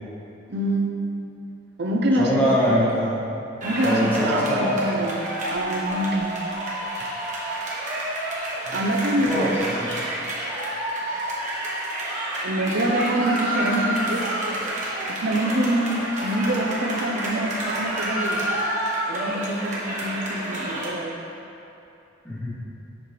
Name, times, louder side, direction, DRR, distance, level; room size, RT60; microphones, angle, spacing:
voice 1, 0.5-1.0 1.8-2.4 3.6-6.3 8.7-9.5 12.4-14.3 15.1-18.4 19.1-21.2, right 1 dB, 60° right, 1 dB, 0.6 m, -25 dB
voice 2, 2.2-3.2 3.8-4.7 8.7-8.8 9.2-9.5 9.7-9.9 22.2-22.5, equal, 10° left, -8 dB, 1.0 m, -23 dB
sound 1, 3.6-20.9, right 1 dB, 40° right, 1.2 m, -30 dB
sound 2, 9.3-9.5 12.9-14.7 17.6-19.4, right 1 dB, 85° right, 1.0 m, -29 dB
7.1 x 4.6 x 3.3 m, 2.8 s
head